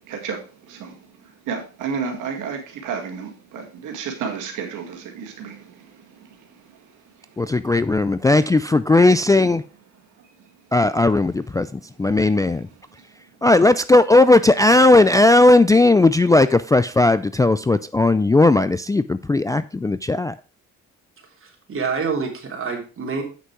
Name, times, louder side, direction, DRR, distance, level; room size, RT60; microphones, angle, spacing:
voice 1, 0.0-7.4 10.2-10.3 12.1-12.2 12.9-13.0, right 6 dB, 85° right, 2.1 m, -33 dB
voice 2, 7.4-9.6 10.7-12.7 13.4-20.3, left 2 dB, 10° left, 0.3 m, -16 dB
voice 3, 21.4-23.2, right 5 dB, 45° right, 3.1 m, -27 dB
8.3 x 6.2 x 4.6 m
cardioid pair, 90°, 30 cm